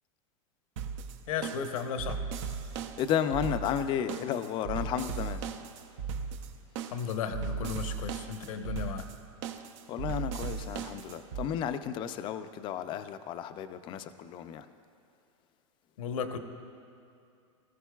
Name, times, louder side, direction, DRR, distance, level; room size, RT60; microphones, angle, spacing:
sound 1, 0.8-11.4, right 6 dB, 60° right, 0.8 m, -37 dB
voice 1, 1.3-2.2 6.9-9.1 16.0-16.4, left 7 dB, 85° left, 6 dB, 1.0 m, -34 dB
voice 2, 3.0-5.4 9.9-14.7, left 9 dB, 30° left, 10 dB, 0.5 m, -33 dB
19.5 x 14.0 x 2.3 m, 2.5 s
supercardioid pair, 150°, 17 cm